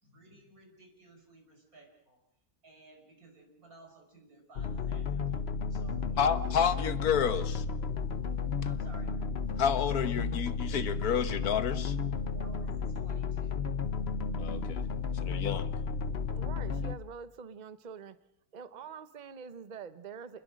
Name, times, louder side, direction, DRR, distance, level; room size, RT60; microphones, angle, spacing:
voice 1, 0.0-2.2 2.6-5.4 5.7-6.4 6.7-6.9 8.6-9.2 12.3-13.6 18.7-18.9, right 2 dB, 70° right, 3 dB, 6.1 m, -56 dB
sound 1, 4.6-17.0, left 5 dB, 45° left, 1.3 m, -33 dB
voice 2, 6.2-7.6 9.6-11.9 14.4-14.8 15.2-15.7, left 7 dB, 75° left, 12 dB, 1.6 m, -30 dB
voice 3, 16.3-18.2 18.5-20.4, right 6 dB, 35° right, 12 dB, 0.9 m, -45 dB
28.5 x 21.0 x 6.4 m, 0.75 s
omnidirectional pair, 1.6 m